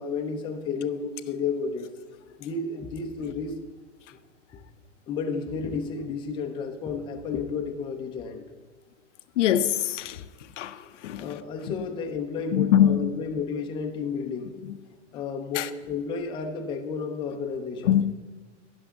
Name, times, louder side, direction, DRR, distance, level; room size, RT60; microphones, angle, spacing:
voice 1, 0.0-1.9 2.4-3.5 5.1-8.4 11.2-14.6 15.1-18.0, left 5 dB, 15° left, 0.5 m, -32 dB
voice 2, 9.4-10.2 10.6-10.7 11.0-11.2 12.5-13.1 15.6-15.7 17.9-18.1, left 10 dB, 75° left, 0.7 m, -22 dB
12.5 x 10.5 x 3.6 m
supercardioid pair, 150°, 37 cm